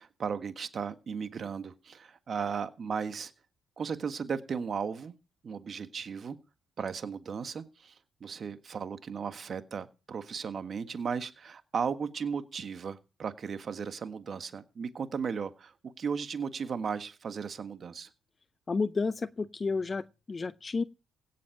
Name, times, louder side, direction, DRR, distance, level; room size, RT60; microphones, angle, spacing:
voice 1, 0.0-3.3 3.8-5.1 5.4-6.4 6.8-18.1, right 6 dB, 50° right, 1.5 m, -36 dB
voice 2, 18.7-20.8, left 4 dB, 35° left, 0.5 m, -31 dB
17.0 x 7.5 x 5.8 m
supercardioid pair, 60°, 0 cm